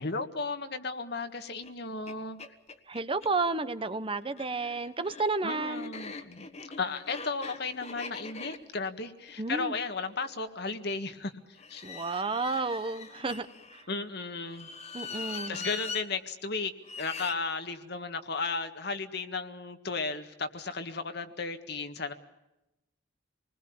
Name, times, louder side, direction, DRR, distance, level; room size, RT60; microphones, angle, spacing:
voice 1, 0.0-2.4 5.4-6.5 6.8-11.3 11.7-11.9 13.9-14.7 15.5-16.7 17.0-22.1, left 4 dB, 65° left, 8 dB, 1.7 m, -34 dB
sound 1, 1.6-1.7 2.1-2.2 2.4-3.3 4.2-10.4 11.6-13.8 14.5-16.1 16.8-17.4, left 4 dB, 35° left, 1.5 m, -42 dB
voice 2, 2.9-5.9 9.4-9.8 11.8-13.9 14.9-15.7, right 3 dB, 30° right, 12 dB, 1.0 m, -32 dB
27.5 x 20.5 x 7.1 m, 0.94 s
head